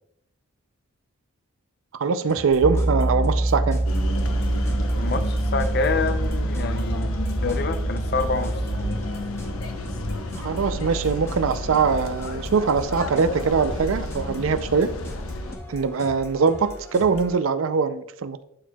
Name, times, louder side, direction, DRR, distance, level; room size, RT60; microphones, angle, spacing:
voice 1, 1.9-3.8 10.4-14.9 15.7-18.4, right 5 dB, 75° right, 0.5 m, -22 dB
sound 1, 2.3-17.4, left 1 dB, 10° left, 0.8 m, -41 dB
Piano, 2.6-8.9, right 1 dB, 10° right, 0.3 m, -25 dB
sound 2, 3.9-15.6, left 1 dB, 85° left, 0.8 m, -31 dB
voice 2, 5.0-7.1 7.4-8.6, left 4 dB, 50° left, 0.5 m, -27 dB
11.5 x 4.5 x 2.3 m
head